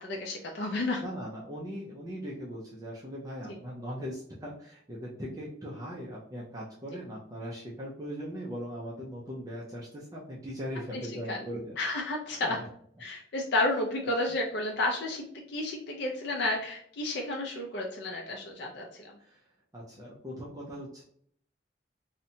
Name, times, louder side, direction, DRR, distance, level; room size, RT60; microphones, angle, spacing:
voice 1, 0.0-1.0 3.4-3.6 10.9-11.0 11.3-11.4 11.8-12.6 13.0-19.0, left 2 dB, 65° left, 0 dB, 0.4 m, -31 dB
voice 2, 1.0-11.8 12.4-12.6 14.3-14.4 19.2-19.4 19.7-21.0, equal, 20° right, -4 dB, 0.4 m, -39 dB
2.7 x 2.1 x 2.6 m, 0.63 s
head